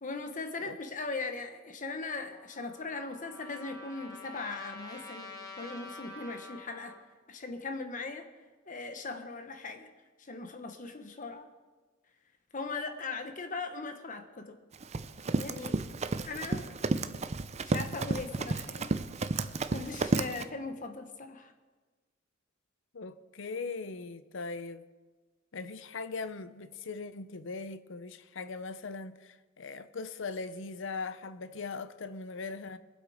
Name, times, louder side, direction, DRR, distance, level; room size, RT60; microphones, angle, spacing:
voice 1, 0.0-7.0 7.3-8.3 8.7-9.9 10.2-11.5 12.5-14.6 15.4-15.8 16.2-16.7 17.6-18.9 19.7-21.5, left 3 dB, 40° left, 1.1 m, -39 dB
Trumpet, 2.3-7.0, left 2 dB, 20° left, 2.0 m, -47 dB
Run, 14.7-20.4, right 3 dB, 35° right, 0.5 m, -32 dB
voice 2, 22.9-24.8 25.5-32.8, left 4 dB, 65° left, 0.7 m, -40 dB
22.0 x 7.9 x 5.0 m
head